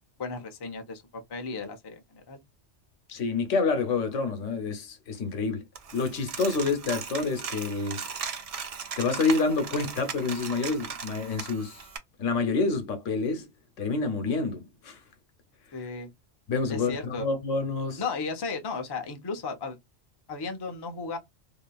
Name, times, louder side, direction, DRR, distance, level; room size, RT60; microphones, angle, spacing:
voice 1, 0.2-2.4 15.7-16.1 16.7-17.3 18.0-19.8 20.3-21.2, left 4 dB, 30° left, 0.4 m, -35 dB
voice 2, 3.1-5.6 5.9-8.0 9.0-11.9 12.2-13.5 13.8-15.0 16.5-18.0, left 4 dB, 85° left, 1.1 m, -28 dB
Coin (dropping), 5.8-12.0, right 6 dB, 60° right, 0.4 m, -38 dB
2.8 x 2.6 x 2.2 m
omnidirectional pair, 1.2 m